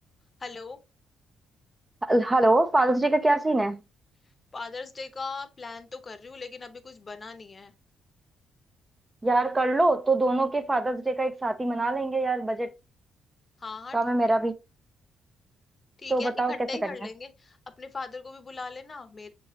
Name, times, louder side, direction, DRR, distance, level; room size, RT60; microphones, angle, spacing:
voice 1, 0.4-0.8 4.5-7.7 13.6-14.0 14.3-14.4 16.0-19.3, left 4 dB, 30° left, 0.7 m, -39 dB
voice 2, 2.0-3.8 9.2-12.7 13.9-14.5 16.1-16.5, right 2 dB, 20° right, 0.4 m, -24 dB
6.3 x 3.0 x 2.8 m
cardioid pair, 90°, 0 cm